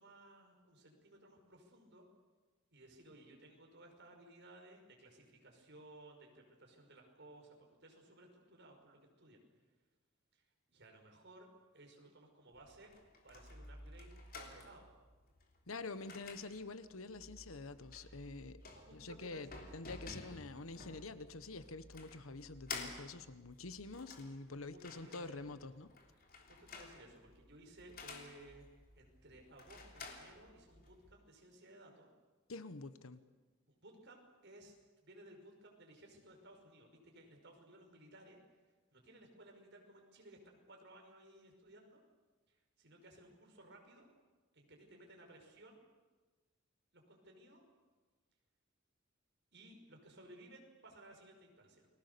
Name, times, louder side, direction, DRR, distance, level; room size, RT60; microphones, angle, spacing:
voice 1, 0.0-2.1 2.7-9.4 10.3-10.4 10.7-12.9 13.2-14.9 18.7-19.7 20.3-20.4 24.7-25.5 26.6-28.7 29.0-32.1 33.7-34.8 35.0-38.4 38.9-42.0 42.5-44.1 44.5-45.8 46.9-47.6 49.5-51.9, right 1 dB, 55° right, 2 dB, 5.5 m, -59 dB
sound 1, 12.5-31.1, left 3 dB, 45° left, 3.4 m, -53 dB
voice 2, 15.7-18.6 18.9-25.9 32.5-33.2, left 3 dB, 85° left, 13 dB, 1.2 m, -47 dB
30.0 x 22.0 x 7.0 m, 1.3 s
head